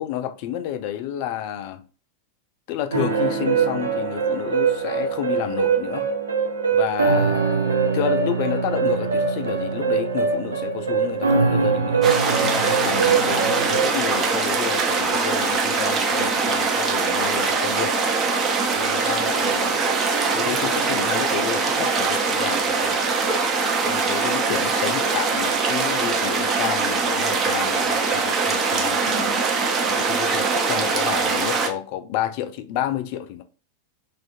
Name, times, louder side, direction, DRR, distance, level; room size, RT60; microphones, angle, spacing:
voice 1, 0.0-1.8 2.7-6.1 6.7-7.4 7.9-12.0 12.3-18.0 18.8-19.9 20.3-23.0 23.8-29.4 29.9-33.4, left 11 dB, 45° left, 0.3 m, -30 dB
sound 1, 2.9-13.9, right 5 dB, 75° right, 0.5 m, -22 dB
sound 2, 12.0-31.7, right 4 dB, 25° right, 0.5 m, -22 dB
2.4 x 2.4 x 2.5 m
figure-of-eight pair, 90°, 0 cm